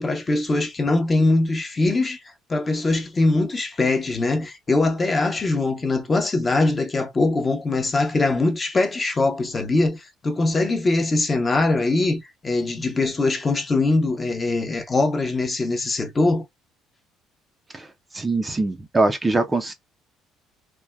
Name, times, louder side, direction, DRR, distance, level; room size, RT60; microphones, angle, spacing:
voice 1, 0.0-2.2 2.5-16.4, left 2 dB, 25° left, 0.7 m, -22 dB
voice 2, 18.1-19.7, right 3 dB, 20° right, 0.5 m, -22 dB
3.3 x 2.1 x 2.2 m
cardioid pair, 110°, 0 cm